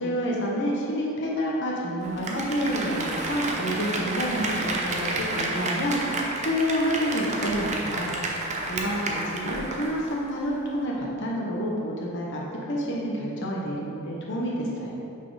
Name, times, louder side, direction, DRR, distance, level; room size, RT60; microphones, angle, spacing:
voice 1, 0.0-6.0 6.4-8.1 8.7-14.9, equal, 55° left, -3 dB, 0.8 m, -28 dB
Applause, 2.0-10.2 10.5-10.6, right 2 dB, 35° right, 0.6 m, -30 dB
5.6 x 4.2 x 4.7 m, 2.8 s
head